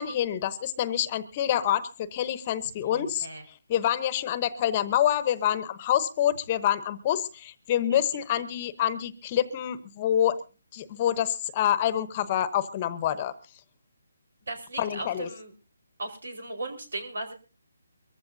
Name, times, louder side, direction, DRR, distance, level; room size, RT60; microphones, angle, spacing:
voice 1, 0.0-10.4 10.7-13.3 14.8-15.3, left 11 dB, 25° left, 15 dB, 0.9 m, -27 dB
voice 2, 3.0-3.4 7.9-8.0 14.5-15.5 16.0-17.3, right 2 dB, 85° right, 6 dB, 4.6 m, -37 dB
23.5 x 15.0 x 2.7 m, 0.32 s
hypercardioid pair, 165°, 0 cm